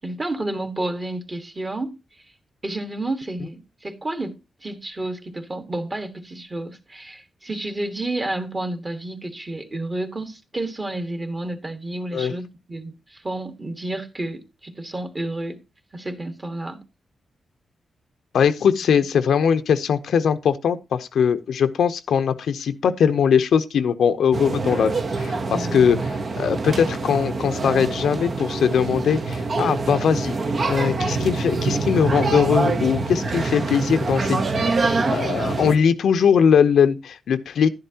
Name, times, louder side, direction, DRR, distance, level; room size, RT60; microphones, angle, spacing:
voice 1, 0.0-2.0 2.6-15.6 15.9-16.8 25.5-25.9, right 2 dB, 25° right, 1.5 m, -30 dB
voice 2, 18.3-30.3 30.7-37.7, left 7 dB, 85° left, 0.7 m, -20 dB
sound 1, 24.3-35.7, right 3 dB, 50° right, 0.9 m, -25 dB
11.0 x 10.5 x 2.8 m
wide cardioid pair, 110°, 0 cm